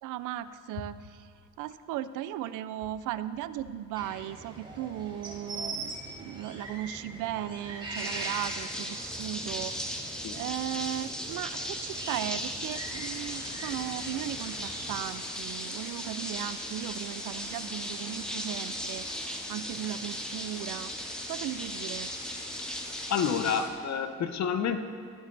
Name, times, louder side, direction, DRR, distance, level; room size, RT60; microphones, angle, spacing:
voice 1, 0.0-9.7 10.3-19.1 19.5-20.9 21.3-22.1, right 12 dB, 85° right, 15 dB, 0.5 m, -37 dB
sound 1, 4.0-15.0, right 2 dB, 15° right, 2.3 m, -42 dB
sound 2, 7.9-23.6, equal, ahead, 1.3 m, -37 dB
sound 3, 12.7-23.7, left 3 dB, 85° left, 1.6 m, -47 dB
voice 2, 23.1-24.8, left 7 dB, 65° left, 9 dB, 0.9 m, -29 dB
18.5 x 8.0 x 3.3 m, 2.2 s
cardioid pair, 90°, 30 cm